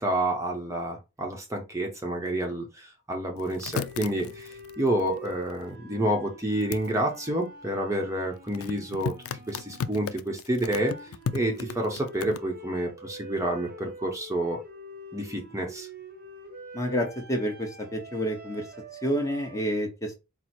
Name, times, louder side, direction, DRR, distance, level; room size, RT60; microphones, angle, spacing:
voice 1, 0.0-9.1 9.5-10.9 11.3-14.6 15.1-15.9, right 1 dB, 15° right, 0.7 m, -29 dB
sound 1, 3.4-5.7 6.6-6.9 8.5-12.4, left 6 dB, 80° left, 0.4 m, -35 dB
sound 2, 3.6-10.1 10.6-19.6, right 1 dB, 45° right, 0.8 m, -46 dB
voice 2, 16.7-18.6 19.0-20.1, equal, 15° left, 0.9 m, -29 dB
4.5 x 2.0 x 4.3 m
head